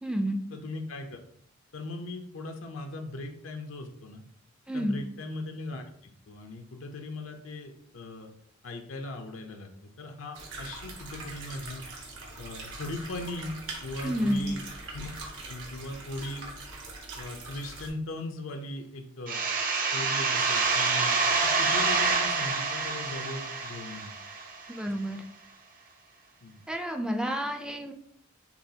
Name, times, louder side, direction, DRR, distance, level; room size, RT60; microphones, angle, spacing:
voice 1, 0.0-0.4 4.7-5.0 14.0-14.6 24.7-25.2 26.7-27.9, equal, 5° right, 5 dB, 0.4 m, -30 dB
voice 2, 0.5-1.2 1.7-4.2 4.7-5.8 6.3-8.3 8.6-11.8 12.4-13.6 13.8-14.6 14.9-15.1 15.5-16.5 17.2-24.1 26.4-26.6, left 2 dB, 80° left, 5 dB, 0.6 m, -39 dB
sound 1, 10.3-17.9, right 2 dB, 65° right, 1.2 m, -42 dB
sound 2, 19.3-24.8, right 4 dB, 45° right, 0.7 m, -27 dB
6.8 x 2.4 x 2.7 m, 0.65 s
head